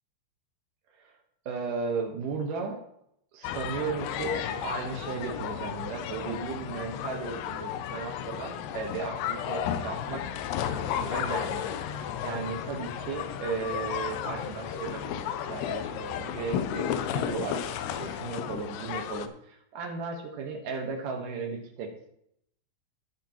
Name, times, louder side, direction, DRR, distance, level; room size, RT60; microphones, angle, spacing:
voice 1, 1.5-2.8 3.3-10.2 10.9-17.6 17.9-22.1, right 4 dB, 70° right, 2 dB, 2.1 m, -35 dB
sound 1, 3.4-19.3, left 9 dB, 85° left, 2.3 m, -33 dB
18.5 x 6.7 x 3.0 m, 0.73 s
omnidirectional pair, 5.5 m